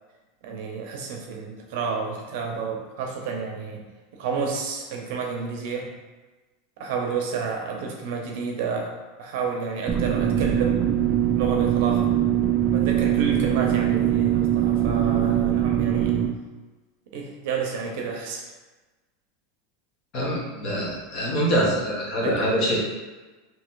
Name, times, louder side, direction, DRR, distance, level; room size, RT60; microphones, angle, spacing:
voice 1, 0.4-6.0 6.8-10.8 11.3-12.2 12.7-16.2 17.1-18.5 22.2-22.5, right 5 dB, 60° right, 1 dB, 0.7 m, -30 dB
sound 1, 9.9-16.3, right 11 dB, 25° right, 0.3 m, -22 dB
voice 2, 20.1-22.8, equal, 35° left, -4 dB, 1.0 m, -24 dB
3.1 x 2.8 x 3.9 m, 1.2 s
supercardioid pair, 170°, 0 cm